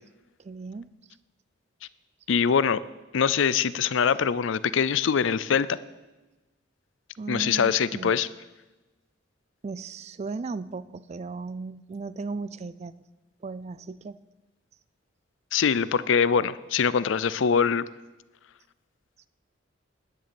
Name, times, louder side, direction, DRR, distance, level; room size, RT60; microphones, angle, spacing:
voice 1, 0.4-0.9 7.2-8.2 9.6-12.9 13.4-14.2, right 4 dB, 35° right, 17 dB, 0.3 m, -36 dB
voice 2, 2.3-2.8 3.1-5.7 7.3-8.3 15.5-17.8, left 6 dB, 70° left, 17 dB, 0.4 m, -23 dB
10.5 x 6.7 x 7.7 m, 1.1 s
head